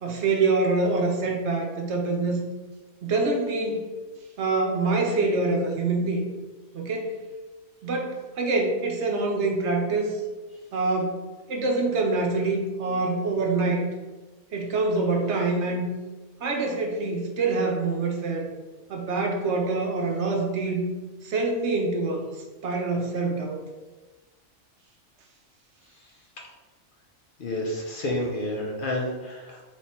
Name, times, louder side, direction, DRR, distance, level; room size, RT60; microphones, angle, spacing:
voice 1, 0.0-2.5 3.0-3.9 4.4-6.2 6.7-7.2 7.8-10.2 10.7-11.2 11.5-13.8 14.5-15.8 16.4-18.5 18.9-20.8 21.2-22.3 22.6-23.6, right 3 dB, 70° right, 2 dB, 1.0 m, -25 dB
voice 2, 27.4-29.6, left 1 dB, 50° left, -1 dB, 0.8 m, -29 dB
3.4 x 3.1 x 4.2 m, 1.2 s
omnidirectional pair, 1.2 m